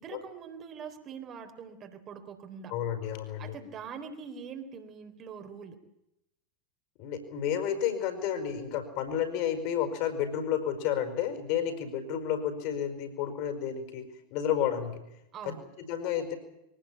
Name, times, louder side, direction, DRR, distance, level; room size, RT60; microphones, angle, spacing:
voice 1, 0.0-2.7 3.4-5.8 15.3-15.7, right 6 dB, 30° right, 7 dB, 3.9 m, -43 dB
voice 2, 2.7-3.6 7.0-15.0 15.5-16.4, left 9 dB, 45° left, 8 dB, 5.1 m, -31 dB
23.5 x 18.5 x 8.8 m, 0.84 s
figure-of-eight pair, 90°, 0 cm